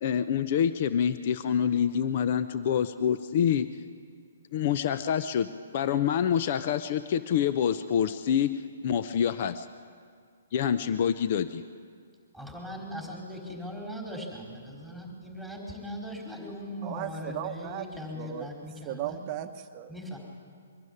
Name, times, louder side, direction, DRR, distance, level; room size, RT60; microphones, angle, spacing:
voice 1, 0.0-3.7 4.5-9.7 10.5-11.6, left 8 dB, 45° left, 12 dB, 0.7 m, -26 dB
voice 2, 12.3-19.2 19.9-20.2, equal, 5° left, -2 dB, 4.7 m, -39 dB
voice 3, 16.8-17.9 18.1-18.5 18.8-19.9, right 12 dB, 30° right, 6 dB, 0.9 m, -36 dB
23.5 x 12.0 x 9.9 m, 2.1 s
hypercardioid pair, 145°, 0 cm